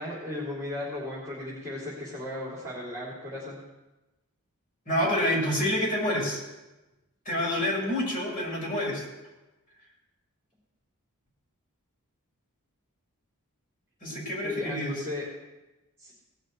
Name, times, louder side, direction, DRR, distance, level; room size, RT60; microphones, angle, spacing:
voice 1, 0.0-3.6 14.0-14.1 14.4-15.2 16.0-16.1, left 1 dB, 15° right, -7 dB, 3.5 m, -36 dB
voice 2, 4.9-6.4 7.3-9.0 14.0-14.9, left 1 dB, 40° left, -5 dB, 5.9 m, -27 dB
18.5 x 6.6 x 6.3 m, 1.0 s
head